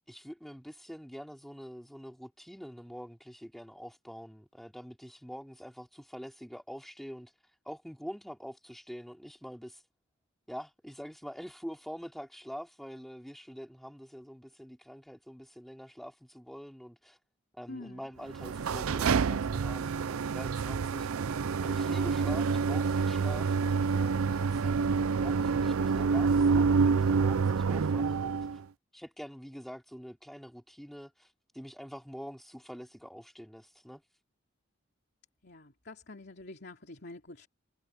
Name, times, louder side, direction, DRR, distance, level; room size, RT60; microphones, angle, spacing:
voice 1, 0.1-7.3 7.7-9.8 10.5-17.2 17.5-21.2 21.6-28.6 28.9-31.3 31.5-34.0, equal, ahead, 3.6 m, -45 dB
voice 2, 17.7-18.0 35.4-37.5, left 2 dB, 50° left, 3.0 m, -46 dB
sound 1, 18.3-28.6, right 5 dB, 90° right, 0.5 m, -27 dB
head